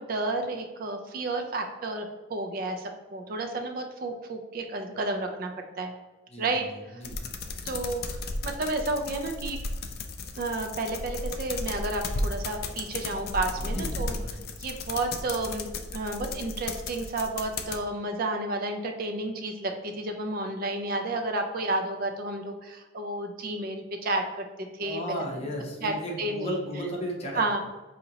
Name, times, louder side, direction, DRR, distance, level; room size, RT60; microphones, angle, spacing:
voice 1, 0.0-5.5 5.8-5.9 6.4-6.6 7.6-8.2 8.4-9.6 10.3-14.1 14.6-15.7 15.9-25.2 25.8-26.6 27.3-27.6, right 2 dB, 45° right, 4 dB, 0.3 m, -31 dB
voice 2, 6.3-7.2 13.6-14.5 24.8-27.6, equal, 30° left, -1 dB, 0.7 m, -35 dB
sound 1, 7.0-17.8, left 3 dB, 50° left, 0.4 m, -35 dB
5.0 x 2.8 x 2.7 m, 1.2 s
head